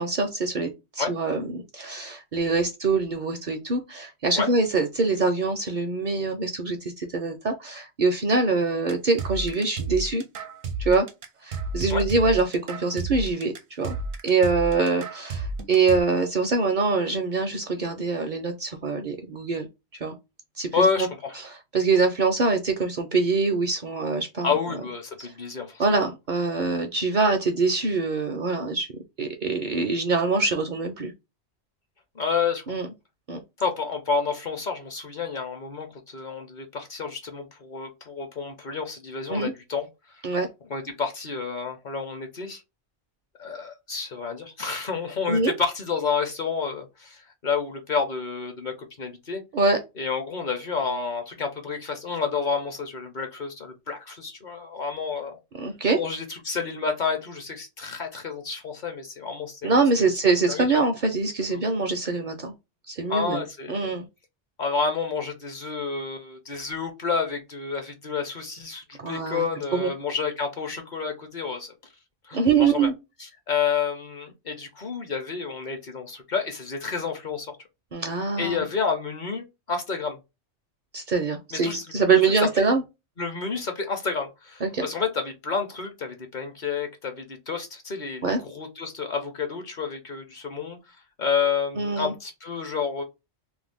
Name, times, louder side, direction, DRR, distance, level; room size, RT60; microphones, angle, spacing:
voice 1, 0.0-10.2 10.8-11.1 11.4-14.0 14.2-19.7 20.0-20.1 20.6-21.1 21.4-24.5 25.8-28.9 29.2-31.1 32.7-32.9 33.3-33.4 39.3-39.5 40.2-40.5 45.3-45.5 49.5-49.8 55.6-56.0 59.6-62.5 62.9-63.4 63.7-64.0 69.0-69.5 69.7-69.9 72.3-72.9 77.9-78.6 80.9-82.8 84.6-84.9 88.2-88.4 91.8-92.1, right 4 dB, 55° right, 0.6 m, -24 dB
sound 1, 8.9-16.0, right 3 dB, 75° right, 0.9 m, -32 dB
voice 2, 20.7-21.4 24.4-26.0 32.1-32.6 33.6-39.9 40.1-40.2 40.7-42.6 43.4-49.4 50.0-55.4 56.0-60.1 60.5-60.8 61.5-61.6 63.1-63.9 64.6-71.7 72.2-72.9 73.2-77.5 78.4-80.2 81.5-81.8 82.1-82.6 83.2-93.0, left 5 dB, 50° left, 0.8 m, -30 dB
2.5 x 2.2 x 3.4 m
omnidirectional pair, 1.1 m